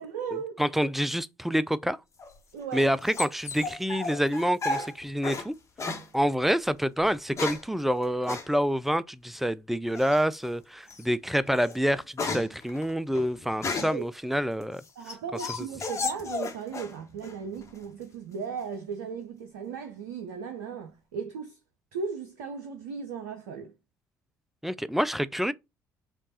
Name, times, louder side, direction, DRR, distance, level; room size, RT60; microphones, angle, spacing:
voice 1, 0.0-0.6 2.5-2.9 10.8-11.0 13.9-14.0 15.0-21.6 21.9-23.7, right 6 dB, 70° right, 0.5 m, -37 dB
voice 2, 0.6-2.0 2.7-5.5 6.1-14.8 24.6-25.5, equal, ahead, 0.4 m, -27 dB
sound 1, 2.2-5.5 5.8-6.1 7.0-7.7 8.3-8.5 10.0-10.4 10.9-11.1 11.5-14.1 14.6-17.0 17.2-17.8, left 3 dB, 30° left, 1.2 m, -34 dB
5.2 x 2.4 x 4.1 m
figure-of-eight pair, 50°, 10 cm